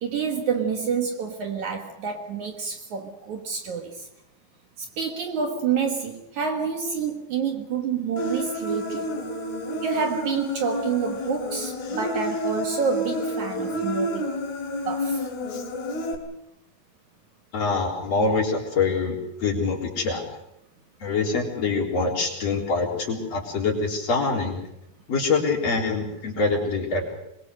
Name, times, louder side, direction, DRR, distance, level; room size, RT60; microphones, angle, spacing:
voice 1, 0.0-4.1 4.8-9.2 9.8-14.2 14.9-15.3, right 6 dB, 60° right, 2.6 m, -28 dB
Human voice, 8.2-16.2, left 1 dB, 85° left, 5.1 m, -29 dB
voice 2, 17.5-20.2 21.0-24.6 25.1-27.2, left 4 dB, 45° left, 4.7 m, -25 dB
25.0 x 21.5 x 6.6 m
omnidirectional pair, 4.4 m